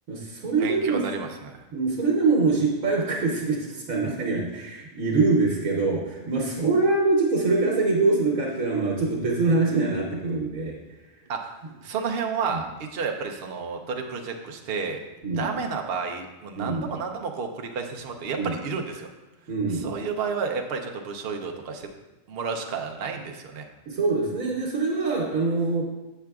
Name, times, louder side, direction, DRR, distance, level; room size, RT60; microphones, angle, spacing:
voice 1, 0.1-1.0 1.7-10.8 12.5-12.6 15.2-15.5 16.6-16.9 18.3-18.5 19.5-19.9 23.9-25.8, right 3 dB, 85° right, -2 dB, 1.3 m, -24 dB
voice 2, 0.6-1.7 11.3-11.5 11.8-15.0 15.4-19.1 19.7-21.9 22.3-23.6, right 5 dB, 55° right, 3 dB, 0.8 m, -31 dB
7.4 x 6.7 x 2.3 m, 1.1 s
omnidirectional pair, 1.4 m